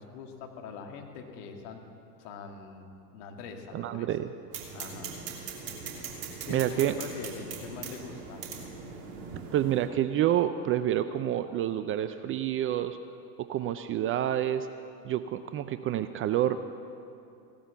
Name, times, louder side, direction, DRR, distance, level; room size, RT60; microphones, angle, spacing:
voice 1, 0.0-1.8 2.2-4.1 4.7-5.1 6.4-8.4, left 5 dB, 55° left, 3 dB, 2.3 m, -43 dB
voice 2, 3.7-4.3 6.5-6.9 9.5-13.0 13.5-14.7 15.0-16.6, right 11 dB, 30° right, 11 dB, 0.5 m, -28 dB
sound 1, 4.5-9.9, right 5 dB, 50° right, 3.0 m, -41 dB
16.5 x 12.5 x 7.0 m, 2.6 s
hypercardioid pair, 85°, 47 cm